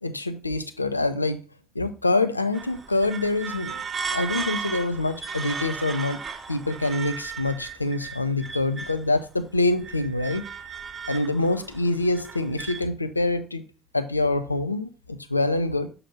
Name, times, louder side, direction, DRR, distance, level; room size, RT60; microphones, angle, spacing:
voice 1, 0.0-1.4 1.7-3.8 4.1-6.2 6.5-10.4 11.1-13.6 13.9-15.9, left 2 dB, 90° left, 0.4 m, -25 dB
sound 1, 2.5-9.1 9.5-12.8, right 6 dB, 35° right, 0.7 m, -35 dB
6.8 x 2.8 x 5.1 m
figure-of-eight pair, 50°, 0 cm